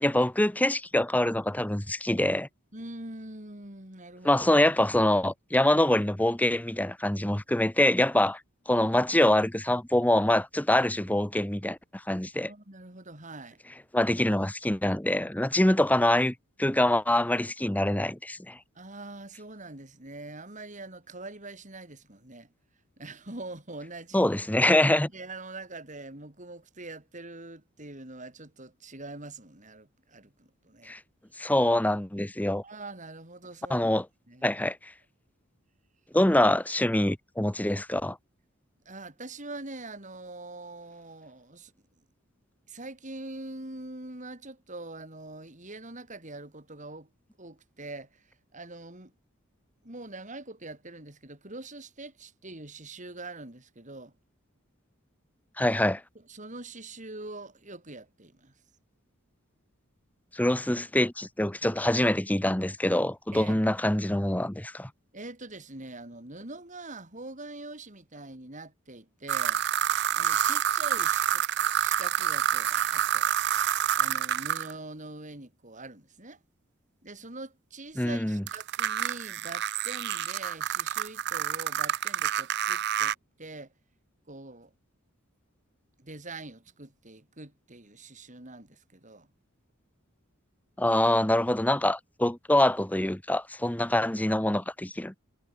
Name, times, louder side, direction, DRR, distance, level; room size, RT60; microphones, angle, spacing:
voice 1, 0.0-2.5 4.2-8.4 8.7-12.5 13.9-16.3 16.6-18.6 24.1-25.1 30.9-31.0 31.4-32.6 33.7-34.0 34.4-34.9 36.1-38.2 55.6-56.0 60.3-64.9 78.0-78.4 90.8-95.2, left 1 dB, 10° left, 1.0 m, -25 dB
voice 2, 2.7-4.5 12.5-13.6 15.7-15.8 18.7-22.5 23.0-24.2 24.6-24.7 25.1-31.0 32.6-33.9 34.3-34.5 38.8-42.0 42.7-47.1 47.4-49.1 49.8-54.1 56.1-58.6 63.3-63.6 65.1-69.6 70.1-71.4 71.8-73.3 74.0-76.4 77.0-83.7 84.3-84.7 86.0-89.3, right 2 dB, 35° right, 5.0 m, -44 dB
sound 1, 69.3-74.7 78.5-83.1, right 10 dB, 55° right, 0.5 m, -28 dB
head